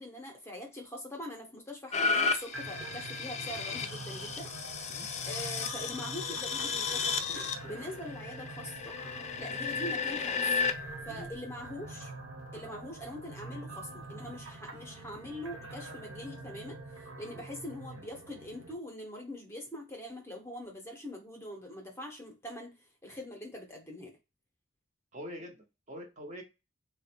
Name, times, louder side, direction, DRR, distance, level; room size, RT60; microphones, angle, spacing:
voice 1, 0.0-4.5 5.2-9.0 9.4-10.6 11.0-12.1 12.5-24.2, left 1 dB, 10° left, 2 dB, 0.8 m, -43 dB
sound 1, 1.9-10.7 11.3-11.4, left 5 dB, 35° left, 0.3 m, -33 dB
sound 2, 2.5-18.7, right 2 dB, 70° right, 1.1 m, -45 dB
voice 2, 25.1-26.4, equal, 35° right, 2 dB, 0.7 m, -45 dB
3.8 x 2.1 x 4.3 m, 0.27 s
head